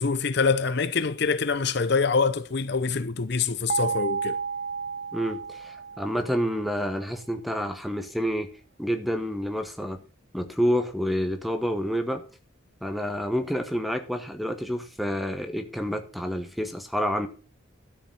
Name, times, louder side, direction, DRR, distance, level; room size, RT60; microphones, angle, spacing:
voice 1, 0.0-4.4, left 5 dB, 55° left, 0.7 m, -25 dB
sound 1, 3.7-6.7, right 5 dB, 35° right, 0.8 m, -32 dB
voice 2, 5.1-8.5 8.8-10.0 10.3-12.2 12.8-17.3, equal, ahead, 1.4 m, -28 dB
13.0 x 7.3 x 5.6 m
head